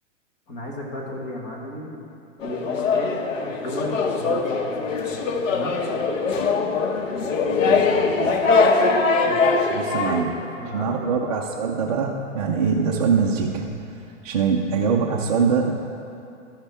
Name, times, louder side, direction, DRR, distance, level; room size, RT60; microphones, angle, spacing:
voice 1, 0.5-2.0 2.4-5.2 5.5-5.8 9.1-9.5 10.0-11.2, left 1 dB, 25° left, -1 dB, 1.2 m, -35 dB
sound 1, 2.4-10.2, left 4 dB, 85° left, 0.9 m, -22 dB
voice 2, 7.0-8.4 9.7-10.3 10.7-13.7 14.2-15.7, right 5 dB, 30° right, -1 dB, 0.4 m, -24 dB
13.5 x 5.6 x 3.4 m, 2.6 s
hypercardioid pair, 160°, 38 cm